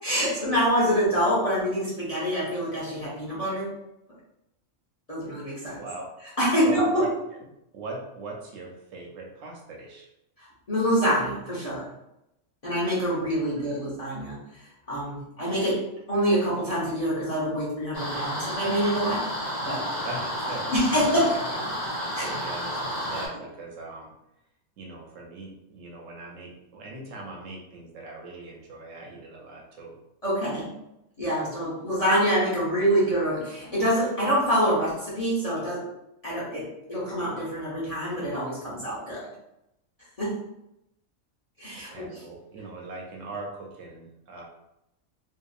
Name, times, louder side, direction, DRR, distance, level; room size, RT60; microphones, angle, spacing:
voice 1, 0.0-3.7 5.1-5.8 6.4-7.0 10.4-11.9 12.6-15.8 16.1-19.2 19.6-19.9 20.7-21.4 22.1-22.3 30.2-30.7 31.2-35.8 36.2-39.3 40.2-40.4 41.6-42.2, equal, 35° left, -8 dB, 0.7 m, -26 dB
voice 2, 5.8-6.1 6.6-7.4 7.7-10.1 13.6-13.7 20.0-21.6 22.0-24.1 24.8-30.0 41.8-44.4, right 2 dB, 70° right, -1 dB, 0.9 m, -40 dB
sound 1, 17.9-23.3, equal, 65° left, 1.4 m, -31 dB
2.7 x 2.4 x 2.3 m, 0.85 s
omnidirectional pair, 1.4 m